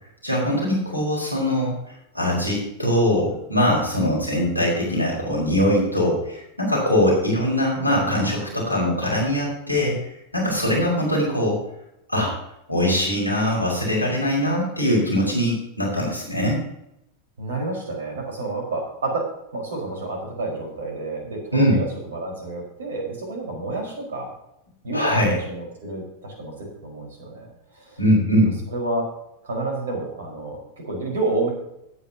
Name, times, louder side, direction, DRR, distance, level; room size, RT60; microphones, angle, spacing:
voice 1, 0.2-1.7 2.1-11.6 12.1-12.3 12.7-16.6 21.5-21.8 24.9-25.3 28.0-28.5, left 1 dB, 90° right, -2 dB, 4.4 m, -22 dB
voice 2, 17.4-19.3 19.5-24.3 24.8-28.0 28.7-29.1 29.4-31.5, right 2 dB, 65° right, 0 dB, 4.7 m, -29 dB
17.0 x 9.1 x 2.9 m, 0.83 s
figure-of-eight pair, 90°, 0 cm